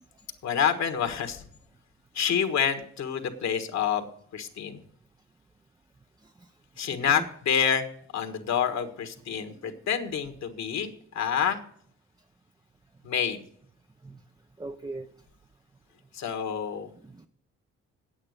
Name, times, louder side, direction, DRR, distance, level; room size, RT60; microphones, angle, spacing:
voice 1, 0.4-1.4 2.1-4.0 4.3-4.8 6.8-7.8 8.1-11.6 13.0-13.4 16.1-16.9, left 7 dB, 65° left, 1.5 m, -28 dB
voice 2, 6.9-7.3 9.4-9.8 14.0-14.2 14.6-15.1 17.0-17.3, right 3 dB, 15° right, 0.5 m, -41 dB
9.0 x 8.6 x 6.5 m
cardioid pair, 90°, 30 cm